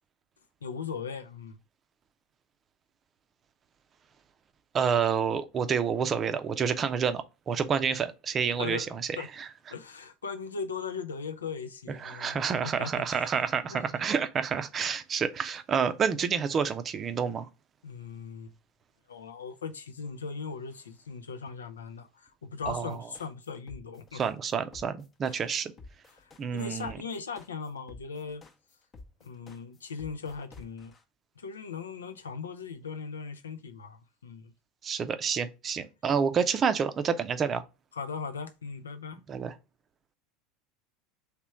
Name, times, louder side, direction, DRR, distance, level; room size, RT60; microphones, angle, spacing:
voice 1, 0.6-1.6 8.6-9.3 9.7-12.4 12.6-13.4 13.7-14.1 17.8-18.5 19.1-24.2 25.2-25.4 26.1-28.4 29.2-30.9 31.4-34.5 37.9-39.2, left 5 dB, 80° left, 0.5 m, -39 dB
voice 2, 4.7-9.2 12.0-17.5 22.7-23.0 24.1-25.7 26.4-26.9 34.8-37.6 39.3-39.5, right 6 dB, 30° right, 0.5 m, -28 dB
sound 1, 22.6-31.0, left 3 dB, 30° left, 0.8 m, -50 dB
3.3 x 3.0 x 4.7 m
figure-of-eight pair, 75°, 0 cm